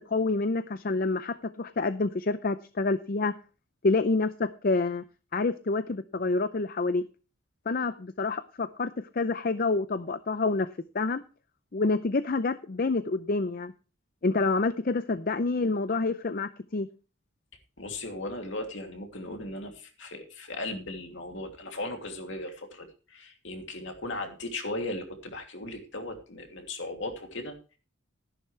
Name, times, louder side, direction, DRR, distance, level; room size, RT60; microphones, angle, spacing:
voice 1, 0.1-3.3 3.8-5.0 5.3-7.0 7.7-10.7 10.9-11.2 11.7-13.7 14.2-16.9, left 3 dB, 45° left, 13 dB, 0.5 m, -27 dB
voice 2, 17.8-27.8, left 2 dB, 60° left, 4 dB, 2.7 m, -37 dB
13.5 x 11.0 x 3.3 m, 0.34 s
head